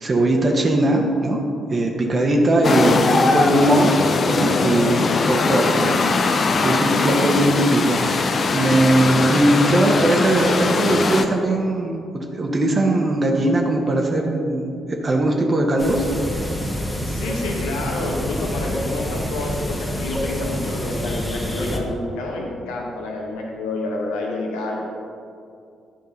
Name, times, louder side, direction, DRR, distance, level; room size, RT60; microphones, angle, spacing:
voice 1, 0.0-1.4 1.7-3.9 4.3-6.0 6.6-8.1 8.5-16.0, right 1 dB, 40° right, 0 dB, 1.1 m, -19 dB
sound 1, 2.6-11.2, left 4 dB, 45° left, 0.6 m, -20 dB
sound 2, 15.8-21.8, equal, 20° left, 1.6 m, -27 dB
voice 2, 17.0-24.8, left 2 dB, 70° left, 0 dB, 1.3 m, -28 dB
10.5 x 5.3 x 5.3 m, 2.6 s
figure-of-eight pair, 40°, 0 cm